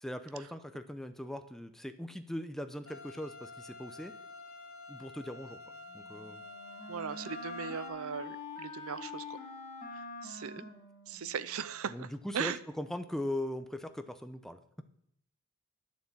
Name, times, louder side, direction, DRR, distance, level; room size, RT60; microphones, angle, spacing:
voice 1, 0.0-4.1 4.9-5.6 5.9-6.4 10.6-10.7 11.9-14.6, left 1 dB, ahead, 8 dB, 0.7 m, -40 dB
sound 1, 2.9-7.9, left 2 dB, 85° left, 2.1 m, -49 dB
Wind instrument woodwind instrument, 5.9-11.7, left 3 dB, 40° left, 2.4 m, -46 dB
voice 2, 6.9-9.4 9.9-10.6 11.1-12.1 12.3-12.6, right 7 dB, 75° right, 15 dB, 0.6 m, -38 dB
11.5 x 7.2 x 7.3 m, 0.72 s
head